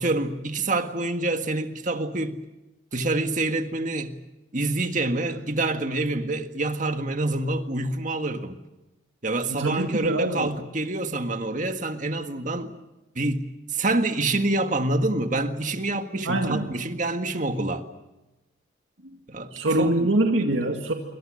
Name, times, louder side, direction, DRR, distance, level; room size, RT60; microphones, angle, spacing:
voice 1, 0.0-2.4 2.9-4.2 4.5-8.6 9.2-12.7 13.2-13.5 13.7-17.8 19.3-19.5 19.8-20.1, right 2 dB, 40° right, 1.7 m, -27 dB
voice 2, 9.5-10.6 16.3-16.8 19.5-20.9, right 1 dB, 80° right, 2.1 m, -24 dB
27.0 x 25.0 x 6.5 m
head